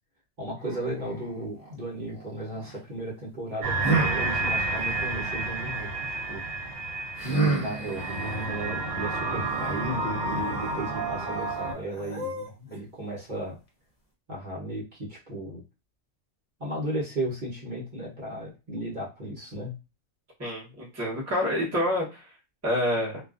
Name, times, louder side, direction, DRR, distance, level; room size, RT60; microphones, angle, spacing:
voice 1, 0.4-6.4 7.4-13.6 14.3-15.6 16.6-19.7, right 1 dB, 45° right, -5 dB, 1.0 m, -35 dB
sound 1, 0.6-2.8 3.8-5.9 7.2-12.8, right 3 dB, 35° left, 0.7 m, -33 dB
sound 2, 3.6-11.7, right 3 dB, 90° right, 0.9 m, -30 dB
voice 2, 20.4-22.2 22.6-23.2, left 1 dB, 15° right, -5 dB, 0.8 m, -27 dB
2.4 x 2.3 x 2.4 m, 0.29 s
omnidirectional pair, 1.2 m